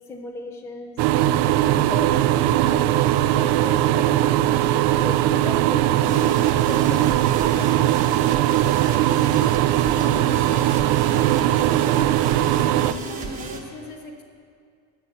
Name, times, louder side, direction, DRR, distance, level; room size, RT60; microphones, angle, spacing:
voice 1, 0.1-4.2 5.0-7.7, left 3 dB, 10° left, 3 dB, 0.3 m, -37 dB
sound 1, 1.0-12.9, right 13 dB, 80° right, 0.5 m, -20 dB
sound 2, 6.0-13.6, right 4 dB, 25° right, 0.9 m, -34 dB
voice 2, 10.0-11.9 12.2-14.2, left 3 dB, 60° left, 1 dB, 1.7 m, -39 dB
9.1 x 6.8 x 6.9 m, 2.2 s
cardioid pair, 155°, 33 cm